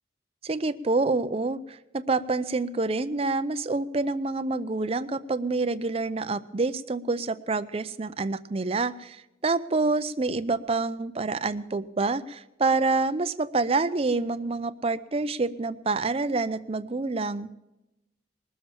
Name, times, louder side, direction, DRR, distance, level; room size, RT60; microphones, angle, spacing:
voice 1, 0.4-17.5, right 3 dB, 35° right, 11 dB, 0.5 m, -27 dB
20.0 x 7.2 x 7.2 m, 0.93 s
head